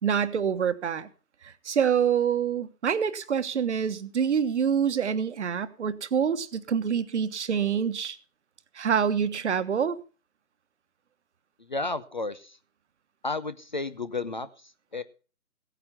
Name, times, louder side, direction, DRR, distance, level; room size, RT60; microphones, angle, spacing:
voice 1, 0.0-1.1 1.4-8.2 8.7-10.0, right 7 dB, 50° right, 13 dB, 1.2 m, -26 dB
voice 2, 11.6-12.6 13.2-15.0, left 3 dB, 30° left, 14 dB, 0.6 m, -33 dB
17.0 x 9.2 x 5.6 m, 0.38 s
figure-of-eight pair, 150°, 46 cm